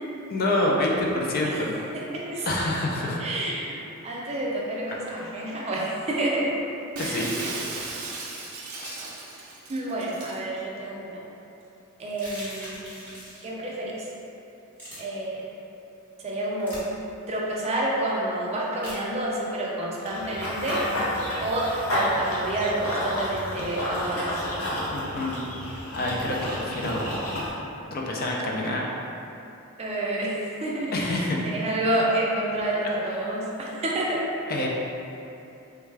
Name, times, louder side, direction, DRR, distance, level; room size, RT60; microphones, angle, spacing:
voice 1, 0.3-1.8 2.5-3.2 5.1-5.5 7.0-7.5 7.8-7.9 8.8-9.0 24.9-27.1 27.9-28.9 30.9-31.4 33.2-33.3 34.5-34.7, left 1 dB, 45° left, -2 dB, 0.4 m, -27 dB
voice 2, 1.9-2.5 3.2-6.6 7.0-7.2 9.7-11.2 12.0-13.0 13.4-14.1 15.0-15.5 16.2-16.8 17.3-20.8 21.4-24.4 29.8-34.3, right 1 dB, 30° right, -4 dB, 0.4 m, -29 dB
Shatter, 6.9-10.4, right 3 dB, 85° right, 0.5 m, -36 dB
sound 1, 12.1-13.5 14.8-15.0 16.6-16.8 18.8-19.0, equal, 10° left, 1.0 m, -40 dB
Run / Bird vocalization bird call bird song, 20.1-27.5, left 1 dB, 70° left, 0.7 m, -30 dB
3.5 x 2.2 x 3.2 m, 2.8 s
head